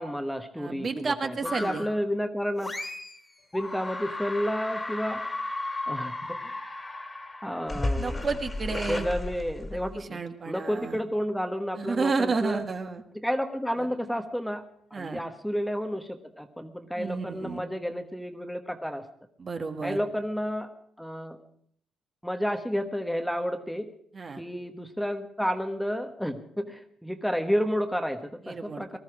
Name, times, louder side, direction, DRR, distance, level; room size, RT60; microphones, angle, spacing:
voice 1, 0.0-2.7 3.5-5.2 5.9-6.6 7.4-8.2 8.9-12.6 13.1-14.6 14.9-19.0 19.8-20.7 21.0-21.4 22.2-23.9 24.4-29.0, equal, ahead, 7 dB, 1.2 m, -31 dB
voice 2, 0.5-1.9 8.0-9.1 9.9-11.0 11.8-13.0 13.8-13.9 14.9-15.2 16.9-17.6 19.4-20.0 24.1-24.4 28.4-29.0, right 4 dB, 40° right, 6 dB, 1.5 m, -31 dB
sound 1, 1.4-2.0 2.6-3.2 3.5-10.0, left 2 dB, 20° left, 2.2 m, -34 dB
19.0 x 13.0 x 4.9 m, 0.64 s
cardioid pair, 90°, 0 cm